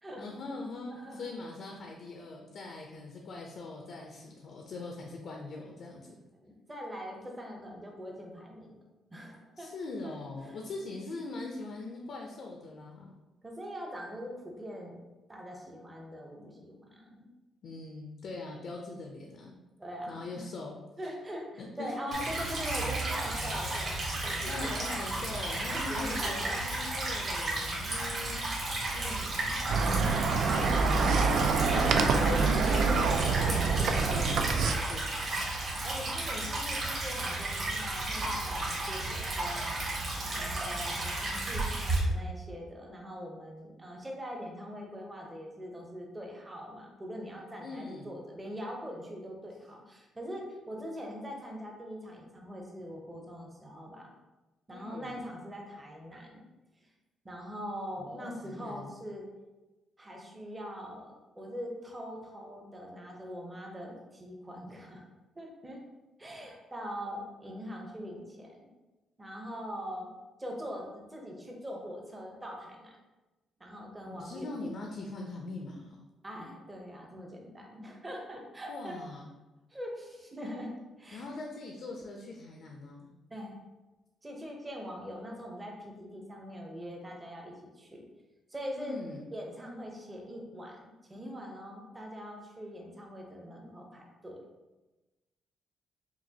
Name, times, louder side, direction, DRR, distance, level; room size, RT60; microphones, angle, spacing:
voice 1, 0.2-6.1 9.6-13.1 17.6-19.6 20.1-21.1 21.6-22.3 24.5-28.5 29.5-29.6 30.4-31.3 31.7-35.4 47.6-48.1 54.7-55.2 58.0-58.9 74.1-76.0 78.7-79.3 81.1-83.1 88.8-89.3, left 3 dB, 55° left, 1 dB, 0.5 m, -41 dB
voice 2, 0.9-1.3 6.4-8.7 9.1-9.7 10.0-10.1 10.5-10.6 13.4-15.0 15.3-17.3 19.8-20.4 21.0-24.8 25.7-26.8 28.9-29.4 31.5-32.4 35.8-54.1 54.7-56.4 57.2-59.3 60.0-65.0 65.4-65.8 66.2-68.6 69.2-70.1 70.4-72.9 73.6-74.5 76.2-79.0 79.7-80.7 81.0-81.3 83.3-83.6 84.2-88.0 88.5-88.9 89.3-90.8 91.1-94.4, equal, 15° right, 0 dB, 0.7 m, -42 dB
Stream / Trickle dribble, 22.1-42.0, right 2 dB, 45° right, 1.3 m, -33 dB
sound 1, 29.7-34.7, right 4 dB, 65° right, 0.3 m, -26 dB
5.8 x 2.5 x 2.8 m, 1.1 s
cardioid pair, 135°, 0 cm